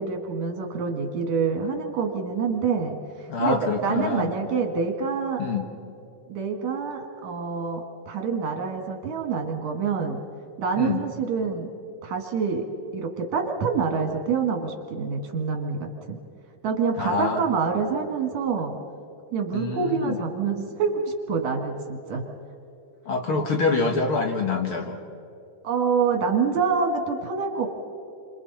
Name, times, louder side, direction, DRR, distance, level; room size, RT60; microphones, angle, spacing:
voice 1, 0.0-5.4 6.3-10.2 10.6-11.7 12.0-12.7 12.9-16.2 16.6-18.8 19.3-22.2 25.6-27.7, right 5 dB, 75° right, 3 dB, 3.4 m, -26 dB
voice 2, 3.3-4.3 5.4-5.7 10.8-11.0 17.0-17.4 19.5-20.2 23.1-25.0, left 4 dB, 50° left, 3 dB, 2.0 m, -25 dB
28.5 x 26.5 x 4.3 m, 2.7 s
omnidirectional pair, 3.3 m